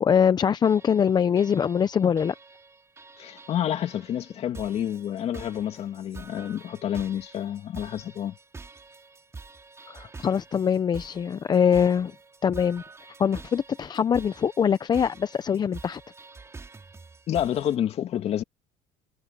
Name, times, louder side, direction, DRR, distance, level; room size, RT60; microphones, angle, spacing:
voice 1, 0.0-2.3 9.9-12.1 12.4-12.8 13.2-16.0, left 7 dB, 35° left, 0.7 m, -23 dB
sound 1, 0.6-17.8, right 4 dB, 20° right, 5.7 m, -47 dB
voice 2, 3.2-8.4 17.3-18.4, left 10 dB, 50° left, 2.5 m, -29 dB
supercardioid pair, 100°, 13 cm